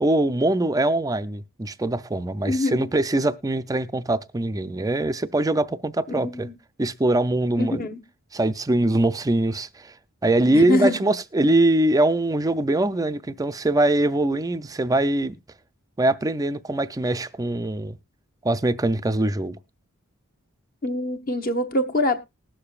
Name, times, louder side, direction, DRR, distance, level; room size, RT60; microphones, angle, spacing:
voice 1, 0.0-6.5 6.8-7.8 8.3-9.9 10.2-15.4 16.0-18.0 18.4-19.6, right 1 dB, 15° right, 0.4 m, -22 dB
voice 2, 2.4-2.9 6.1-6.5 7.6-8.0 10.5-11.0 20.8-22.2, left 1 dB, 40° left, 1.1 m, -24 dB
20.0 x 6.8 x 2.4 m
head